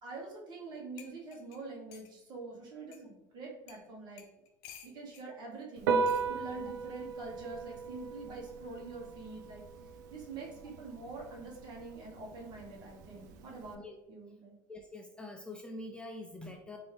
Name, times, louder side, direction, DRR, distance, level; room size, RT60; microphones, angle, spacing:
voice 1, 0.0-4.2 4.8-9.6 10.1-13.8 14.1-14.5, right 3 dB, 50° right, -1 dB, 1.3 m, -45 dB
sound 1, 0.6-0.7 1.0-2.1 2.9-3.0 3.7-3.8 4.2-5.3 6.1-6.3 7.4-7.7, left 8 dB, 75° left, 0.6 m, -53 dB
Piano, 5.8-13.7, right 5 dB, 90° right, 0.4 m, -37 dB
voice 2, 14.7-16.8, left 2 dB, 10° left, 2 dB, 0.4 m, -45 dB
4.0 x 2.7 x 3.3 m, 0.93 s
supercardioid pair, 110°, 10 cm